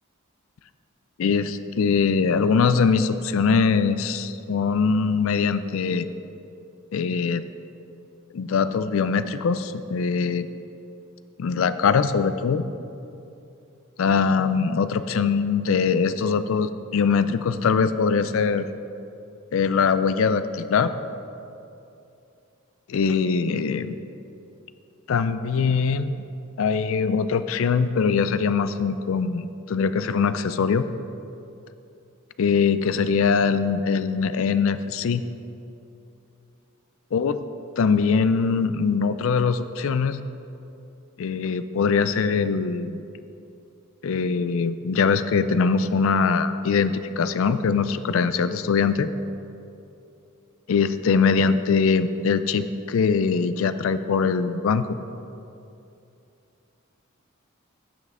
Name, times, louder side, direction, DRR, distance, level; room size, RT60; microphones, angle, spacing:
voice 1, 1.2-6.1 6.9-7.4 8.3-10.5 11.4-12.6 14.0-18.7 19.5-20.9 22.9-23.9 25.1-26.2 26.6-30.9 32.4-35.2 37.1-37.4 37.8-40.2 41.2-43.0 44.0-49.1 50.7-54.9, left 5 dB, 65° left, 12 dB, 0.4 m, -22 dB
15.5 x 5.6 x 3.6 m, 2.7 s
head